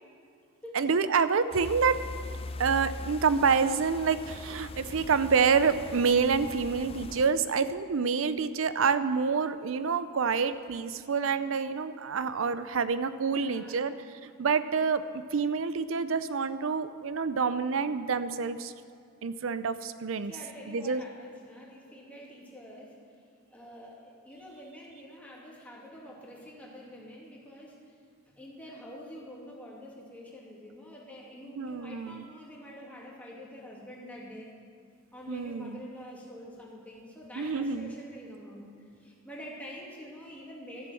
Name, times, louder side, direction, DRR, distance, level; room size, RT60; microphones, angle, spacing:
voice 1, 0.7-2.0 2.6-13.9 14.2-18.7 19.2-20.3 20.7-21.0 31.6-32.2 35.3-35.8 37.4-37.9, right 5 dB, 75° right, 13 dB, 0.5 m, -27 dB
sound 1, 1.5-7.3, left 2 dB, 30° left, 0.4 m, -41 dB
voice 2, 13.3-14.0 20.3-23.0 23.5-27.8 28.3-34.5 35.1-38.6 39.0-40.9, equal, 5° left, -4 dB, 2.2 m, -46 dB
13.0 x 7.0 x 7.6 m, 2.4 s
head